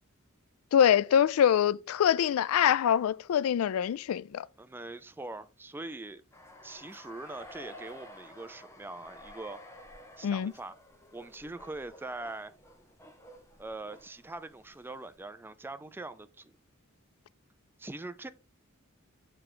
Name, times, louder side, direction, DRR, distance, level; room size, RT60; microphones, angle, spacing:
voice 1, 0.7-4.5 10.2-10.5, left 9 dB, 85° left, 0.3 m, -24 dB
voice 2, 4.6-6.2 6.6-9.6 10.2-10.7 11.1-12.5 13.6-16.5 17.8-18.3, right 2 dB, 10° right, 0.4 m, -42 dB
sound 1, 6.3-14.8, left 1 dB, 15° left, 1.1 m, -52 dB
6.7 x 4.5 x 3.8 m
head